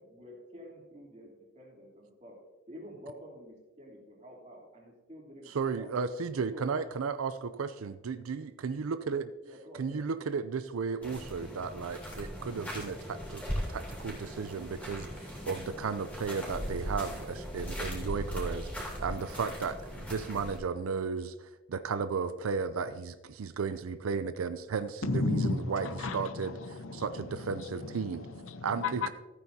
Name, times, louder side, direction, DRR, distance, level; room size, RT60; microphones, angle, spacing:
voice 1, 0.0-2.4 2.7-5.9 6.5-6.7 9.4-10.0, equal, 35° right, 3.1 m, -49 dB
voice 2, 5.5-9.3 9.8-13.4 13.7-25.4 25.7-25.9 26.1-26.5 26.9-28.2 28.6-29.1, right 5 dB, 80° right, 0.4 m, -34 dB
sound 1, 11.0-20.6, equal, 5° left, 3.4 m, -39 dB
voice 3, 25.0-29.1, left 3 dB, 75° left, 0.7 m, -34 dB
14.5 x 9.1 x 2.8 m
head